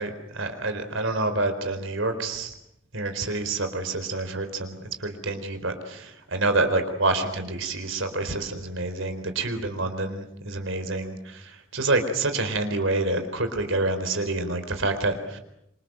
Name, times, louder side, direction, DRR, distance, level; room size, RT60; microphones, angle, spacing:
voice 1, 0.0-2.5 2.9-11.2 11.7-15.4, right 2 dB, 65° right, 8 dB, 4.2 m, -27 dB
27.0 x 25.5 x 7.9 m, 0.79 s
head